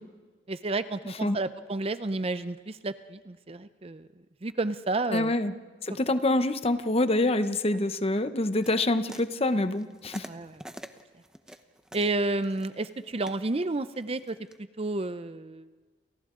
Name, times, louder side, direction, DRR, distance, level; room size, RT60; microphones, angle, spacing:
voice 1, 0.5-4.1 4.4-5.3 10.3-10.6 11.9-14.4 14.8-15.8, right 2 dB, 35° right, 12 dB, 0.6 m, -31 dB
voice 2, 5.1-5.5 5.8-10.3, left 2 dB, 35° left, 10 dB, 0.8 m, -26 dB
sound 1, 8.6-14.6, right 1 dB, 5° right, 0.9 m, -47 dB
29.5 x 29.0 x 3.8 m, 1.4 s
head